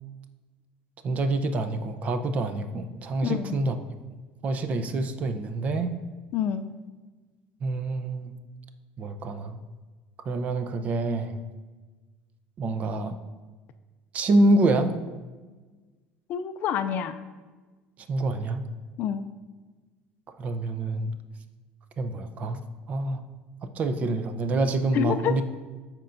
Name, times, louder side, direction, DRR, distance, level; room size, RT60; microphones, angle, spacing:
voice 1, 1.0-3.7 4.4-5.9 7.6-8.3 9.0-9.6 10.3-11.4 12.6-13.2 14.1-14.9 18.1-18.6 20.4-21.1 22.0-22.6 22.9-23.2 23.6-25.4, right 2 dB, 40° right, 9 dB, 0.6 m, -26 dB
voice 2, 3.2-3.6 6.3-6.7 16.3-17.2 19.0-19.2 24.9-25.4, left 9 dB, 50° left, 11 dB, 0.4 m, -27 dB
13.5 x 4.5 x 2.6 m, 1.3 s
cardioid pair, 120°, 4 cm